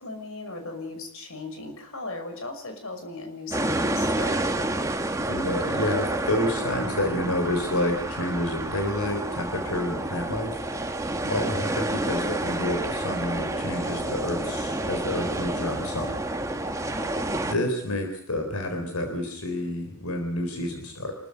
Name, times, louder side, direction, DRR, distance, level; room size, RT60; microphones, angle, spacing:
voice 1, 0.0-4.7 11.2-11.7 16.9-17.4, left 2 dB, 70° left, 5 dB, 5.9 m, -38 dB
sound 1, 3.5-17.5, right 1 dB, 15° right, 1.7 m, -29 dB
voice 2, 5.3-10.6 11.3-16.2 16.7-17.0 17.5-21.2, left 1 dB, 85° left, 5 dB, 4.2 m, -29 dB
27.5 x 14.0 x 9.9 m, 0.70 s
head